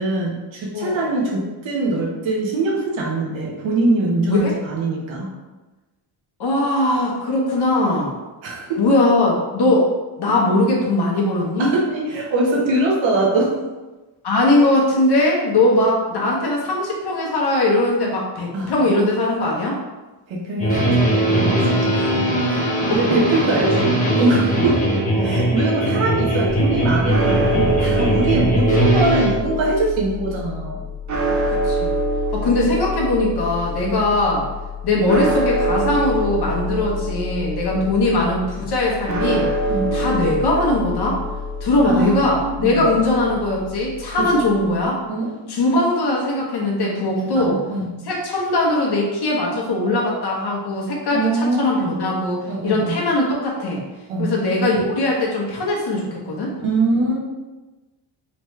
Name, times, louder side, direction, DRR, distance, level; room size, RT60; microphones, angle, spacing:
voice 1, 0.0-5.3 8.4-8.8 11.6-13.6 18.5-18.7 20.3-22.2 22.5-22.6 22.9-24.8 25.2-30.8 33.8-33.9 37.7-37.9 39.7-39.9 41.9-42.9 44.2-44.3 45.0-45.3 47.3-47.9 51.1-51.8 52.5-53.0 54.1-54.3 56.6-57.2, right 2 dB, 75° right, -3 dB, 1.4 m, -22 dB
voice 2, 0.7-1.0 4.3-4.5 6.4-8.2 8.8-9.9 10.2-11.7 14.2-19.8 21.9-22.1 22.9-23.0 25.1-25.3 28.2-28.5 31.6-31.9 32.3-34.5 34.8-39.5 39.9-41.2 41.6-45.0 45.5-47.6 48.1-53.8 54.2-56.5, left 2 dB, 55° left, -2 dB, 1.2 m, -20 dB
sound 1, 20.6-29.3, right 1 dB, 15° left, 1.1 m, -19 dB
sound 2, 26.4-44.8, equal, 40° right, 0.7 m, -26 dB
4.2 x 3.2 x 3.2 m, 1.1 s
cardioid pair, 130°, 46 cm